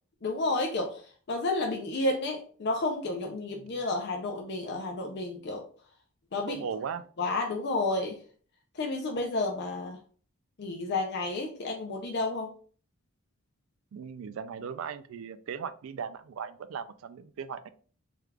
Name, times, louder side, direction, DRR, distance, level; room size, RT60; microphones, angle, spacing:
voice 1, 0.2-1.0 1.3-5.6 6.3-6.6 7.2-8.2 8.8-10.0 10.6-12.5, left 2 dB, 50° left, 3 dB, 0.5 m, -31 dB
voice 2, 6.5-7.0 13.9-17.7, right 6 dB, 65° right, 12 dB, 0.3 m, -38 dB
3.4 x 2.3 x 3.3 m, 0.42 s
head